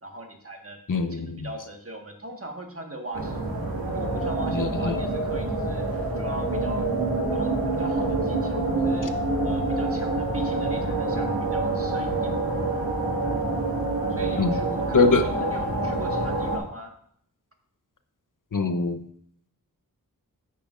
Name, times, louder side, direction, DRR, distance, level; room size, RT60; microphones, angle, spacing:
voice 1, 0.0-0.8 1.1-3.4 3.9-5.8 6.2-6.9 7.3-9.2 9.4-12.3 14.1-15.1 15.4-16.9, right 1 dB, 40° right, 3 dB, 1.6 m, -39 dB
voice 2, 0.9-1.5 4.5-5.0 14.4-14.6 14.9-15.3 18.5-19.0, left 4 dB, 60° left, 8 dB, 0.8 m, -23 dB
sound 1, 3.1-16.6, right 2 dB, 85° right, 1.9 m, -26 dB
9.9 x 8.4 x 2.5 m, 0.66 s
wide cardioid pair, 45°, 35 cm